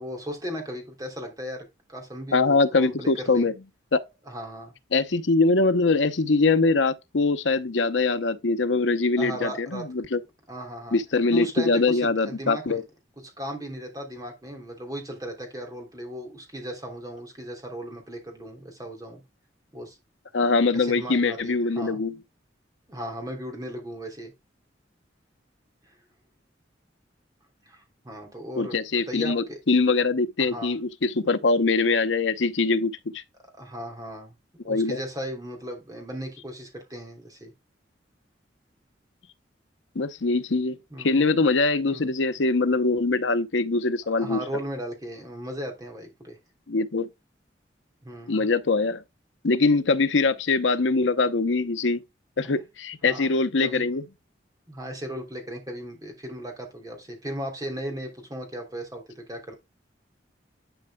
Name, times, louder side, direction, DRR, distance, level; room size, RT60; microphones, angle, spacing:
voice 1, 0.0-3.5 4.2-4.7 9.2-9.9 10.5-11.0 11.3-12.8 13.4-19.2 19.7-20.0 20.7-22.0 22.9-24.3 25.9-26.0 27.7-29.6 30.4-30.7 33.6-34.3 34.6-37.5 40.9-41.1 41.9-42.1 44.2-46.4 48.0-48.5 52.4-52.5 53.1-53.3 53.6-54.0 54.7-59.5, equal, 20° right, 3.1 m, -36 dB
voice 2, 2.3-3.5 3.9-4.0 4.9-10.2 10.9-12.8 20.3-22.2 28.6-33.2 34.7-35.0 39.9-44.4 46.7-47.1 48.3-49.0 49.4-52.0 52.4-54.0, left 3 dB, 85° left, 0.8 m, -23 dB
11.5 x 5.3 x 2.2 m
head